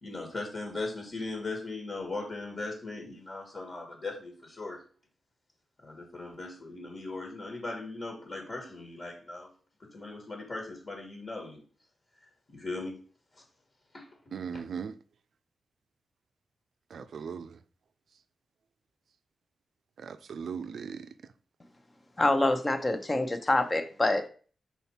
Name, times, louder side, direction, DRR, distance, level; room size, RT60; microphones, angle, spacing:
voice 1, 0.0-4.8 5.8-9.5 9.9-11.6 12.5-13.1 13.9-14.1 14.5-14.6, left 3 dB, 40° left, 1.5 m, -38 dB
voice 2, 14.3-14.9 16.9-17.5 20.0-21.1, right 6 dB, 70° right, 0.5 m, -38 dB
voice 3, 22.2-24.3, left 2 dB, 25° left, 0.8 m, -26 dB
5.5 x 4.3 x 4.4 m
wide cardioid pair, 115°, 0 cm